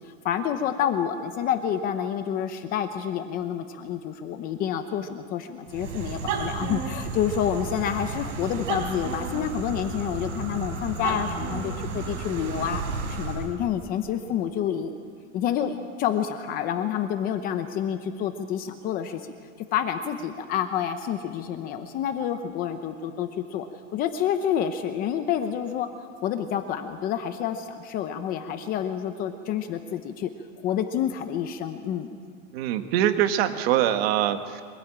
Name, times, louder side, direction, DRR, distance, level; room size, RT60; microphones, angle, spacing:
voice 1, 0.2-12.8 13.1-14.9 15.3-19.3 19.7-23.7 23.9-25.9 26.2-30.3 30.6-32.1, left 9 dB, 25° left, 8 dB, 0.7 m, -28 dB
sound 1, 5.7-13.6, right 4 dB, 75° right, 4.4 m, -32 dB
voice 2, 32.5-34.6, right 11 dB, 50° right, 8 dB, 1.5 m, -23 dB
24.5 x 17.5 x 8.8 m, 2.1 s
supercardioid pair, 175°, 39 cm